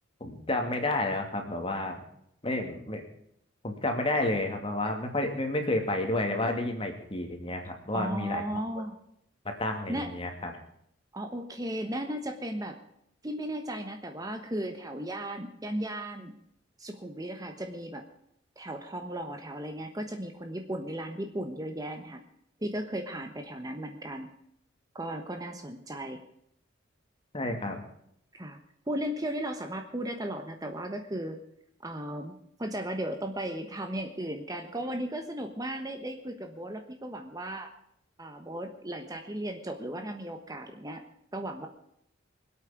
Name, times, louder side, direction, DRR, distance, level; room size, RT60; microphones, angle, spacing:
voice 1, 0.2-2.0 2.4-3.0 3.6-8.4 9.4-10.5 27.3-27.8, left 2 dB, 30° left, 4 dB, 2.6 m, -30 dB
voice 2, 7.9-9.0 9.9-10.1 11.1-12.8 13.2-16.3 16.8-18.0 18.6-22.2 22.6-24.3 24.9-26.2 28.3-28.6 28.9-31.4 31.8-37.7 38.2-41.0 41.3-41.7, right 1 dB, 20° right, 5 dB, 1.2 m, -36 dB
24.5 x 8.7 x 5.2 m, 0.73 s
head